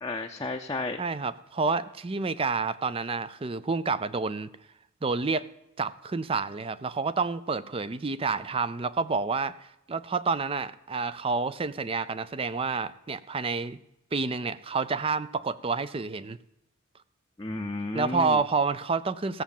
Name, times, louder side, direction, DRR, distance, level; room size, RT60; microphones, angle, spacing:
voice 1, 0.0-1.0 17.4-18.4, left 2 dB, 20° left, 2 dB, 0.6 m, -32 dB
voice 2, 1.0-4.5 5.0-5.4 5.8-13.8 14.1-16.4 17.9-19.4, right 4 dB, 30° right, 15 dB, 0.4 m, -29 dB
16.0 x 7.2 x 7.3 m, 0.83 s
head